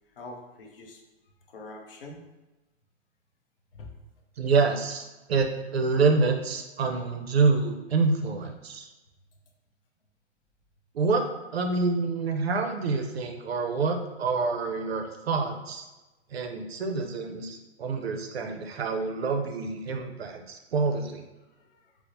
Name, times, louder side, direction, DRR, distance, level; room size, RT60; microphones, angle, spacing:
voice 1, 0.2-1.0 1.5-2.2 3.7-3.9 21.6-21.9, left 2 dB, 50° left, 1 dB, 0.6 m, -44 dB
voice 2, 4.4-8.9 10.9-11.2 11.5-15.8 16.3-21.2, right 4 dB, 60° right, 5 dB, 0.5 m, -27 dB
4.5 x 2.0 x 2.6 m, 1.1 s
hypercardioid pair, 170°, 36 cm